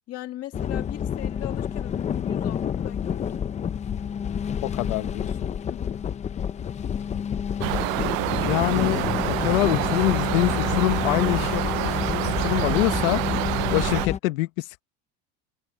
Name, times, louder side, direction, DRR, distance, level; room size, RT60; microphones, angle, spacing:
voice 1, 0.1-3.4 5.7-6.0, left 14 dB, 35° left, 2.0 m, -38 dB
sound 1, 0.5-14.2, left 8 dB, 15° left, 0.6 m, -29 dB
voice 2, 4.6-5.3 8.4-9.0 9.3-13.2 13.7-14.8, left 20 dB, 85° left, 1.4 m, -25 dB
sound 2, 7.6-14.1, right 24 dB, 80° right, 0.7 m, -27 dB
cardioid pair, 160°, 39 cm